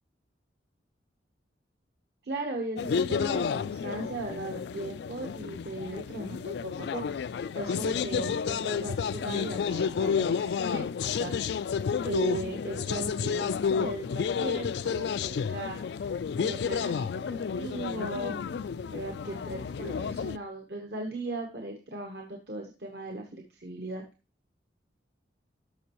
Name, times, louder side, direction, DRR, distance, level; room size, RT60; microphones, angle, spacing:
voice 1, 2.2-7.0 7.5-11.3 12.0-16.1 16.4-18.4 18.9-24.0, right 2 dB, 60° right, 2 dB, 1.0 m, -38 dB
sound 1, 2.8-20.4, left 6 dB, 65° left, 0.3 m, -31 dB
13.0 x 5.3 x 3.0 m, 0.31 s
head